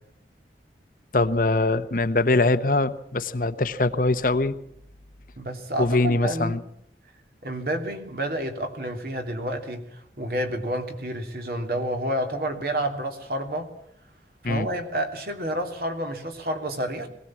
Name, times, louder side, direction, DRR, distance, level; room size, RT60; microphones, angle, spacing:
voice 1, 1.1-4.5 5.8-6.6 14.4-14.7, left 2 dB, 50° left, 11 dB, 1.0 m, -22 dB
voice 2, 5.4-6.6 7.4-13.7 14.4-17.1, right 1 dB, 55° right, 4 dB, 3.1 m, -29 dB
22.0 x 18.0 x 7.4 m, 0.73 s
head